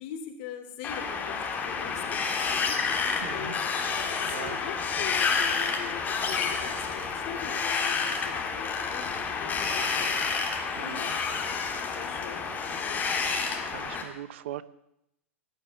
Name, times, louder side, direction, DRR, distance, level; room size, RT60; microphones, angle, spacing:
voice 1, 0.0-10.2 10.8-11.2 12.0-12.5 12.8-13.1, left 9 dB, 50° left, 7 dB, 2.8 m, -42 dB
Wind, 0.8-14.0, left 5 dB, 20° left, 3.2 m, -29 dB
voice 2, 3.2-3.6 4.3-4.6 10.8-11.1 13.6-14.6, right 12 dB, 60° right, 17 dB, 0.8 m, -40 dB
18.5 x 6.9 x 9.0 m, 0.81 s
hypercardioid pair, 100°, 7 cm